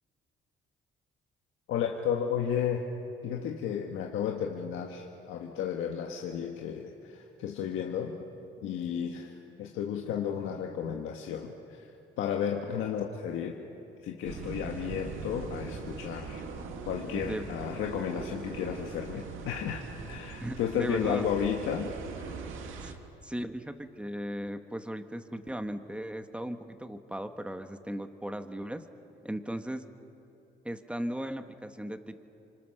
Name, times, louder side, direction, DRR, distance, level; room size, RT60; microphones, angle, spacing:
voice 1, 1.7-2.9 3.2-8.2 8.6-11.9 12.2-13.5 14.0-16.4 16.9-21.9 22.2-22.3, left 8 dB, 90° left, 2 dB, 1.6 m, -33 dB
sound 1, 14.2-22.9, right 5 dB, 85° right, 2.1 m, -41 dB
voice 2, 20.4-21.3 22.8-22.9 23.2-28.8 29.2-29.8 30.6-32.2, right 1 dB, 5° right, 7 dB, 1.6 m, -37 dB
28.5 x 25.5 x 6.7 m, 2.9 s
cardioid pair, 90°, 20 cm